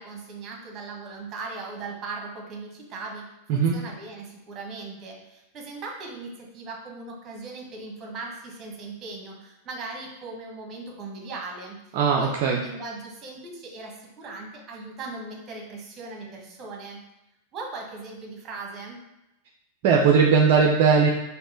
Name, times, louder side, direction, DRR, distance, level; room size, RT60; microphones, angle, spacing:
voice 1, 0.0-17.0 17.5-19.0, right 3 dB, 30° right, 0 dB, 1.3 m, -38 dB
voice 2, 11.9-12.6 19.8-21.1, right 6 dB, 50° right, 1 dB, 0.5 m, -19 dB
4.3 x 2.7 x 4.4 m, 0.92 s
figure-of-eight pair, 95°, 0 cm